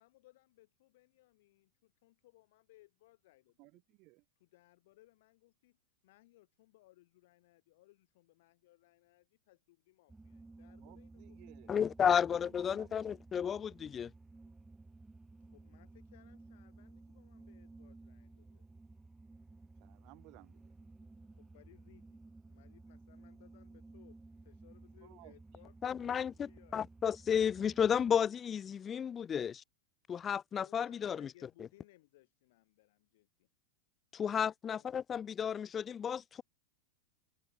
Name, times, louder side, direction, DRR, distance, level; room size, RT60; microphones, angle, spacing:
voice 1, 0.0-3.8 4.4-5.8 6.0-12.1 15.4-18.7 21.3-26.9 30.6-33.5 34.8-35.0, left 18 dB, 65° left, 7.1 m, -65 dB
voice 2, 3.6-4.2 10.8-11.7 12.0-13.2 19.8-20.7 25.0-25.3 26.1-26.2, right 25 dB, 50° right, 1.2 m, -59 dB
sound 1, 10.1-28.2, right 3 dB, 10° right, 2.6 m, -56 dB
voice 3, 11.7-14.1 25.8-29.6 30.1-31.3 34.1-36.4, left 8 dB, 25° left, 0.6 m, -33 dB
open air
hypercardioid pair, 115°, 0 cm